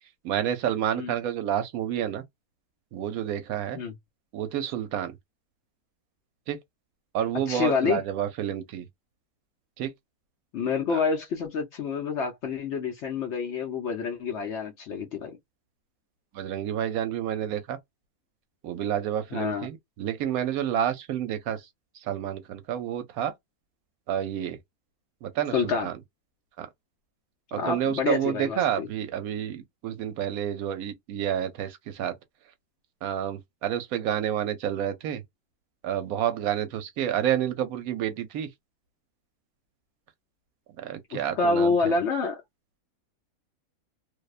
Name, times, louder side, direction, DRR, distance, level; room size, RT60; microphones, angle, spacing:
voice 1, 0.2-2.2 2.9-3.8 4.3-5.2 6.5-6.6 7.1-8.9 9.8-9.9 10.9-11.0 16.3-17.8 18.6-21.6 22.1-23.3 24.1-24.6 25.2-25.9 26.6-26.7 27.5-32.1 33.0-35.2 35.8-38.5 40.8-42.0, right 10 dB, 75° right, 1.0 m, -29 dB
voice 2, 7.5-8.0 10.5-15.4 19.3-19.7 25.5-25.9 27.5-28.9 41.1-42.4, left 4 dB, 60° left, 0.8 m, -28 dB
2.7 x 2.1 x 2.3 m
omnidirectional pair, 1.6 m